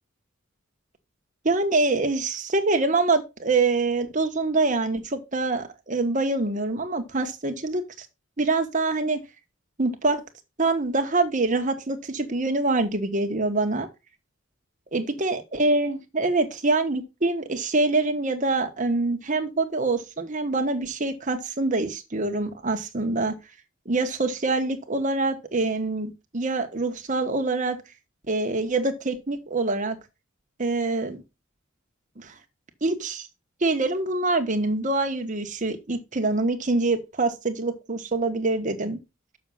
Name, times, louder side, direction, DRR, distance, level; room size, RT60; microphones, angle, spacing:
voice 1, 1.4-7.8 8.4-9.2 9.8-10.2 10.6-13.9 14.9-23.3 23.8-27.8 28.3-30.0 30.6-31.2 32.2-32.3 32.8-33.3 33.6-39.0, right 3 dB, 40° right, 1.3 m, -25 dB
6.6 x 6.3 x 5.6 m
head